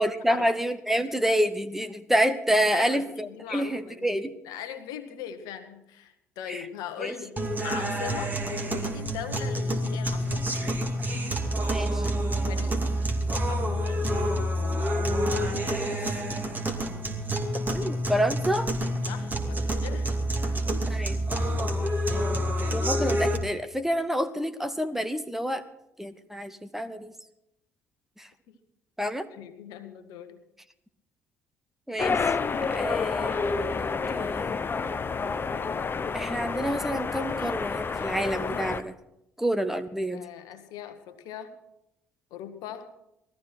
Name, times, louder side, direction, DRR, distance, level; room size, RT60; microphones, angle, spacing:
voice 1, 0.0-4.3 6.5-6.6 7.0-7.1 11.7-12.0 15.7-15.9 17.7-18.7 20.9-21.2 22.7-25.6 26.0-27.1 28.2-28.3 29.0-29.3 31.9-32.3 32.6-34.7 36.1-38.9 39.4-40.2, equal, 5° right, 9 dB, 0.9 m, -28 dB
voice 2, 2.7-4.1 4.4-7.4 7.6-10.8 12.5-12.8 13.5-14.0 19.1-21.0 22.0-22.4 28.5-28.6 29.3-30.4 40.1-41.5 42.3-42.9, left 9 dB, 65° left, 9 dB, 1.4 m, -40 dB
sound 1, 7.4-23.4, equal, 25° right, 2.5 m, -28 dB
sound 2, 32.0-38.8, left 5 dB, 30° left, 0.8 m, -29 dB
19.0 x 14.0 x 4.4 m, 0.83 s
figure-of-eight pair, 55°, 7 cm